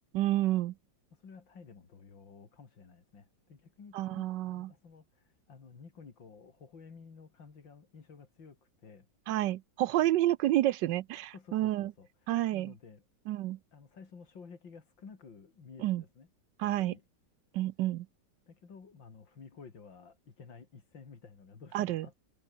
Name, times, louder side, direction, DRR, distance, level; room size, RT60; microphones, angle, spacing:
voice 1, 0.1-0.7 3.9-4.7 9.3-11.9 12.3-12.7 13.3-13.6 15.8-16.0 16.6-16.9 17.5-18.1 21.7-22.1, right 14 dB, 75° right, 1.2 m, -29 dB
voice 2, 1.1-9.1 11.3-13.0 13.7-16.3 16.6-17.0 18.5-22.1, left 5 dB, 85° left, 3.6 m, -53 dB
omnidirectional pair, 2.0 m